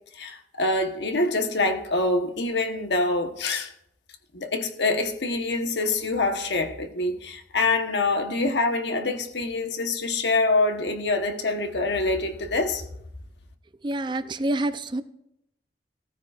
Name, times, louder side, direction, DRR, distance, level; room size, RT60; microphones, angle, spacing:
voice 1, 0.1-3.7 4.3-12.8, left 2 dB, 80° left, 1.1 m, -25 dB
voice 2, 13.8-15.0, right 1 dB, 25° right, 0.4 m, -27 dB
15.5 x 14.0 x 2.4 m
head